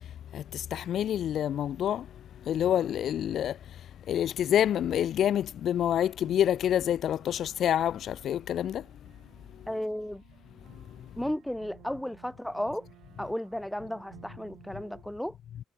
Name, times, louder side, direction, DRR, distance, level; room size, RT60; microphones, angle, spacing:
voice 1, 0.3-2.1 2.5-3.6 4.1-8.8, left 10 dB, 60° left, 0.5 m, -27 dB
sound 1, 5.8-15.0, right 16 dB, 85° right, 5.2 m, -57 dB
voice 2, 9.7-10.2 11.2-12.9 13.2-15.3, equal, 5° left, 1.7 m, -34 dB
cardioid pair, 115°, 0 cm